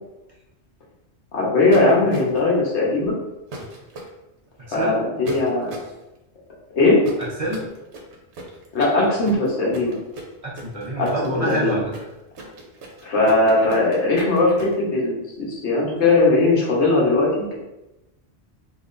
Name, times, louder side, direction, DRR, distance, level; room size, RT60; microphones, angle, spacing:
voice 1, 1.3-3.2 4.7-5.8 6.7-7.0 8.7-10.0 11.0-11.8 13.0-17.5, left 2 dB, 80° left, -4 dB, 1.2 m, -19 dB
sound 1, 1.7-2.5 3.5-4.1 5.3-5.9 7.0-14.7, right 2 dB, 80° right, 1.0 m, -38 dB
voice 2, 4.7-5.0 7.2-7.7 10.4-11.9, right 1 dB, 35° right, -5 dB, 0.7 m, -27 dB
3.6 x 2.9 x 2.5 m, 0.96 s
omnidirectional pair, 1.1 m